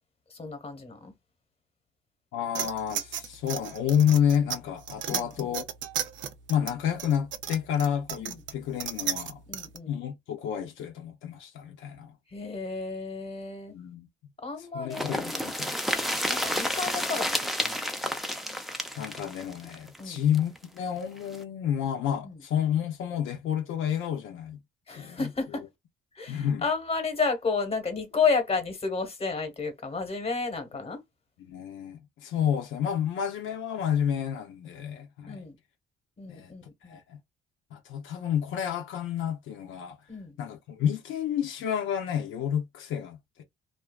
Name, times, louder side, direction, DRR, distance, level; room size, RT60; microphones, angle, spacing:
voice 1, 0.3-1.1 5.1-5.6 8.2-8.4 9.5-9.9 12.3-13.7 14.4-15.4 16.3-17.3 17.6-17.8 20.0-20.2 22.2-22.4 24.9-25.6 26.1-31.0 35.3-35.5 36.2-37.0 40.1-40.4, left 4 dB, 30° left, 1.1 m, -31 dB
voice 2, 2.3-5.7 6.5-9.4 9.9-12.1 13.7-14.1 14.7-15.8 19.0-24.6 25.0-25.3 26.3-26.6 31.4-35.5 36.3-36.5 36.9-37.2 37.7-40.0 40.4-43.4, left 9 dB, 85° left, 0.5 m, -30 dB
sound 1, 2.5-9.8, right 9 dB, 70° right, 0.5 m, -35 dB
sound 2, 14.9-20.6 21.0-21.1 21.3-21.4, equal, ahead, 0.5 m, -30 dB
2.5 x 2.2 x 2.3 m
cardioid pair, 90°, 20 cm